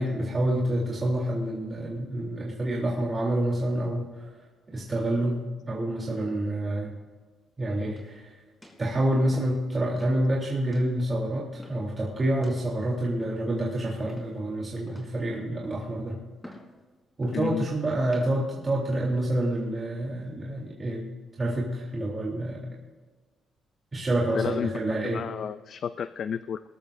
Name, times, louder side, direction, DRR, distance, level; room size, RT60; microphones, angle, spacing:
voice 1, 0.0-4.3 4.7-6.9 7.6-8.3 8.8-16.2 17.2-21.1 21.4-22.7 23.9-25.2, right 1 dB, 30° right, -4 dB, 3.2 m, -28 dB
sound 1, 7.9-8.2 8.6-8.9 9.3-9.6 10.0-10.2 10.7-10.9 11.6-11.9 12.4-12.6 13.2-13.6 14.1-14.5 14.9-15.2 15.6-15.9 16.4-16.7 17.2-17.5 18.0-18.3 18.9-19.2, left 1 dB, 10° left, 3.7 m, -49 dB
voice 2, 17.3-17.7 24.3-24.7 25.0-26.6, left 7 dB, 60° left, 13 dB, 0.4 m, -31 dB
21.0 x 12.5 x 2.6 m, 1.3 s
cardioid pair, 90°, 0 cm